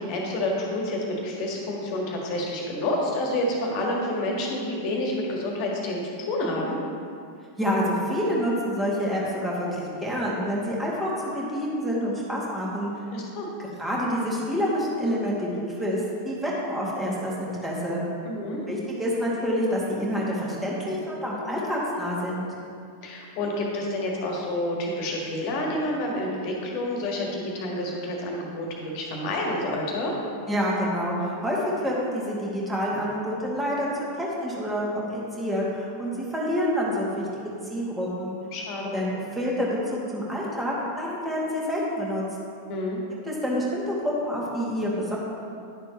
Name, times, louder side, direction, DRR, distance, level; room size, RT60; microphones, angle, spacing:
voice 1, 0.0-6.8 13.1-13.5 18.2-18.6 23.0-30.1 38.5-39.0 42.7-43.0, left 1 dB, 45° left, -1 dB, 1.7 m, -29 dB
voice 2, 7.6-12.9 13.8-16.0 16.3-18.0 18.7-22.5 30.5-33.9 34.1-38.4 38.9-42.3 43.3-45.2, equal, 10° right, -5 dB, 2.1 m, -27 dB
11.0 x 6.7 x 3.0 m, 2.4 s
figure-of-eight pair, 90°, 0 cm